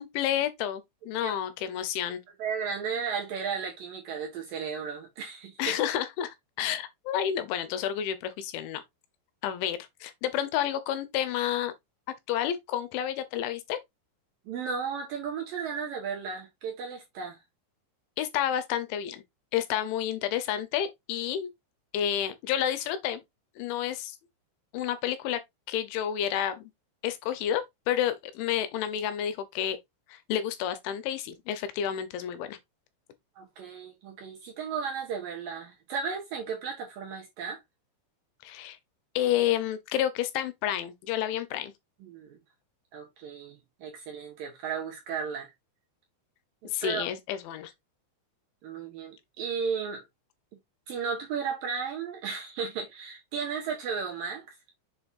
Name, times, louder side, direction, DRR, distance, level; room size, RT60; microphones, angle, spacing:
voice 1, 0.0-2.2 5.6-8.8 9.4-11.7 12.3-13.8 18.2-19.2 19.5-21.5 21.9-23.2 23.6-24.2 24.7-25.4 25.7-26.6 27.0-29.8 30.1-32.6 38.4-38.8 39.2-41.7 46.7-47.7, left 10 dB, 80° left, 3.2 m, -30 dB
voice 2, 2.4-5.8 14.5-17.4 33.4-37.6 42.0-42.4 42.9-45.5 46.6-47.0 48.6-50.0 50.9-54.5, right 6 dB, 70° right, 2.3 m, -34 dB
7.2 x 5.6 x 2.5 m
omnidirectional pair, 5.4 m